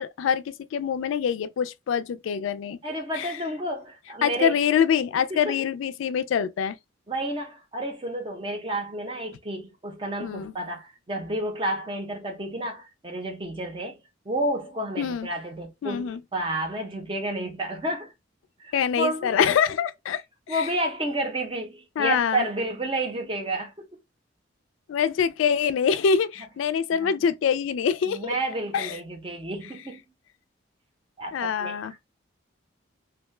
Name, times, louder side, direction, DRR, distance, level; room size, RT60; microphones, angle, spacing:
voice 1, 0.0-2.8 3.1-3.3 4.2-6.8 10.2-10.5 15.0-15.3 15.8-16.2 18.7-20.2 20.5-20.7 22.0-22.5 24.9-28.4 28.7-29.0 31.3-31.9, left 7 dB, 80° left, 0.3 m, -25 dB
voice 2, 2.8-4.6 5.3-5.6 7.1-18.1 18.6-19.5 20.5-23.8 27.0-27.1 28.1-30.0 31.2-31.8, right 1 dB, 25° right, 0.6 m, -31 dB
2.7 x 2.1 x 3.1 m
head